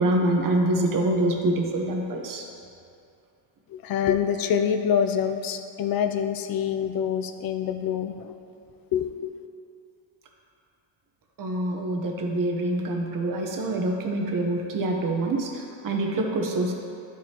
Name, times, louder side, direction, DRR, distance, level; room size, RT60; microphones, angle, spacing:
voice 1, 0.0-2.4 11.4-16.7, right 1 dB, 45° right, 1 dB, 0.9 m, -25 dB
voice 2, 3.7-8.3 8.9-9.3, left 8 dB, 50° left, 8 dB, 0.5 m, -26 dB
12.0 x 4.8 x 2.9 m, 2.6 s
cardioid pair, 155°, 45 cm